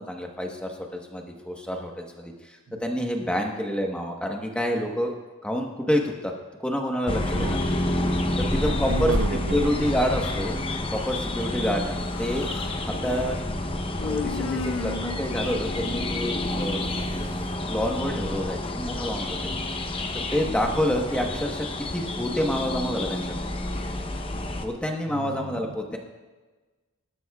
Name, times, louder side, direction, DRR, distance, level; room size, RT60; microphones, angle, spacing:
voice 1, 0.0-5.1 5.4-6.3 6.6-7.6 8.4-9.1 9.5-10.5 10.9-12.5 12.8-13.4 14.0-16.8 17.7-19.6 20.3-23.4 24.6-26.0, equal, 5° left, 1 dB, 1.2 m, -28 dB
sound 1, 7.1-24.7, left 1 dB, 25° left, 0.8 m, -29 dB
voice 2, 8.7-9.9 25.1-25.5, right 4 dB, 60° right, 10 dB, 0.5 m, -32 dB
Human voice, 11.9-12.8 14.0-16.7, left 5 dB, 70° left, 0.4 m, -36 dB
19.0 x 12.5 x 2.4 m, 1.3 s
head